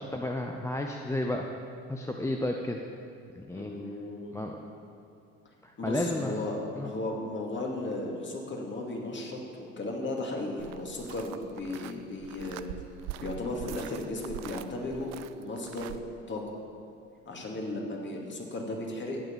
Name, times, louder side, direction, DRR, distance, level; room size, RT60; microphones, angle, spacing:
voice 1, 0.0-1.4 1.9-2.8 3.3-3.7 4.3-4.6 5.6-6.3 6.8-6.9, left 1 dB, 5° left, 2 dB, 0.8 m, -32 dB
voice 2, 3.5-4.4 5.8-6.6 6.8-12.7 13.2-16.0 16.3-16.4 17.3-19.2, left 2 dB, 30° left, 0 dB, 2.5 m, -35 dB
sound 1, 10.6-16.0, right 12 dB, 45° right, 0.5 m, -43 dB
11.5 x 9.3 x 7.2 m, 2.6 s
figure-of-eight pair, 55°, 38 cm